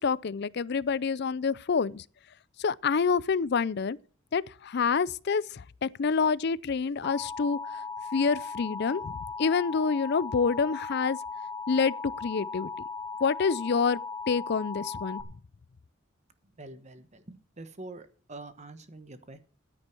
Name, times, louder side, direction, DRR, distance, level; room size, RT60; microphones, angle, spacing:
voice 1, 0.0-2.0 2.6-4.0 4.3-7.8 8.1-11.2 11.7-12.7 13.2-14.0 14.3-15.3, left 5 dB, 55° left, 0.5 m, -27 dB
Alarm, 7.0-15.2, left 4 dB, 10° left, 1.4 m, -37 dB
voice 2, 16.6-19.4, right 2 dB, 35° right, 1.1 m, -45 dB
14.0 x 9.9 x 4.4 m
head